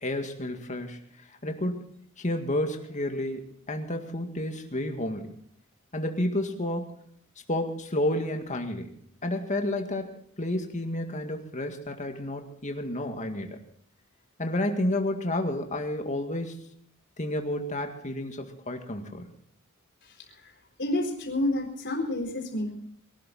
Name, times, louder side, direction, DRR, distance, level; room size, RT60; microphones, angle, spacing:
voice 1, 0.0-1.0 1.4-3.4 3.7-5.3 5.9-6.9 7.5-8.9 9.2-13.6 14.4-16.6 17.2-19.3, left 1 dB, 35° left, 4 dB, 2.0 m, -31 dB
voice 2, 20.8-22.7, left 1 dB, 55° left, 1 dB, 4.2 m, -29 dB
22.5 x 12.5 x 4.2 m, 0.64 s
head